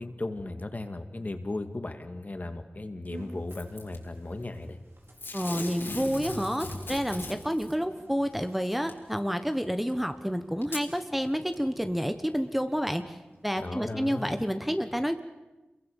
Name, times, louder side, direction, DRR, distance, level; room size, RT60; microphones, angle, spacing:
voice 1, 0.0-4.8 13.6-14.4, left 2 dB, 40° left, 7 dB, 2.1 m, -36 dB
sound 1, 3.1-13.4, right 2 dB, 80° right, 4.8 m, -54 dB
Packing tape duct tape / Tearing, 3.5-4.0 5.2-7.7 8.9-9.0 9.9-10.0 10.6-10.9 11.5-11.6, left 2 dB, 70° left, 4.5 m, -38 dB
voice 2, 5.3-13.2 13.4-15.2, equal, 5° right, 8 dB, 1.2 m, -29 dB
27.5 x 22.5 x 7.2 m, 1.1 s
wide cardioid pair, 80°, 4 cm